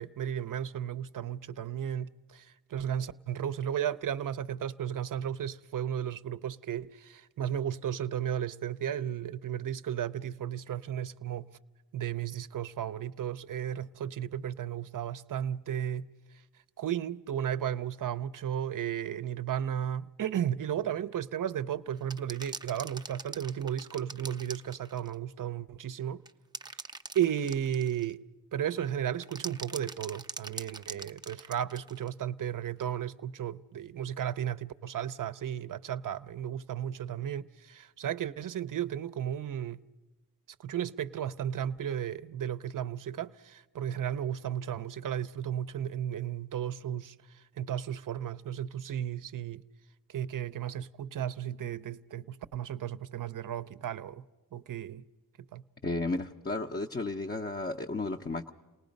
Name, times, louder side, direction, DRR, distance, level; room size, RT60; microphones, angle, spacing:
voice 1, 0.0-11.5 11.9-16.1 16.8-26.2 27.1-28.2 28.5-39.8 40.6-49.6 50.1-54.2 54.5-55.0 55.5-55.6, right 9 dB, 55° right, 0.6 m, -34 dB
sound 1, 22.0-25.2 26.3-28.1 29.2-32.1 32.8-32.9, right 3 dB, 10° right, 0.6 m, -43 dB
voice 2, 55.8-58.5, left 3 dB, 25° left, 0.7 m, -33 dB
29.0 x 18.5 x 5.2 m
cardioid pair, 70°, 39 cm